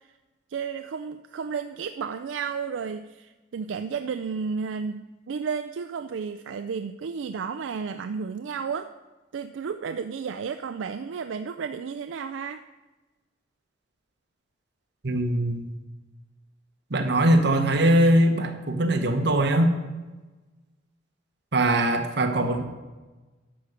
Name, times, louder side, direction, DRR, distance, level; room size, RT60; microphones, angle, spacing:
voice 1, 0.5-8.9 9.3-12.6, right 6 dB, 85° right, 9 dB, 0.4 m, -32 dB
voice 2, 15.0-15.6 16.9-19.7 21.5-22.6, right 1 dB, 65° right, 5 dB, 1.2 m, -21 dB
11.5 x 5.1 x 6.6 m, 1.2 s
head